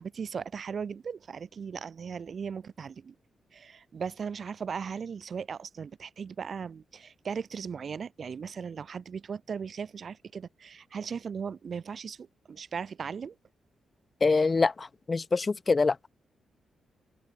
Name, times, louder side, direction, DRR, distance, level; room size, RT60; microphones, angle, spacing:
voice 1, 0.0-3.1 3.5-13.4 14.3-14.4, right 6 dB, 45° right, 1.0 m, -38 dB
voice 2, 14.2-16.0, left 4 dB, 30° left, 0.4 m, -25 dB
open air
cardioid pair, 125°, 0 cm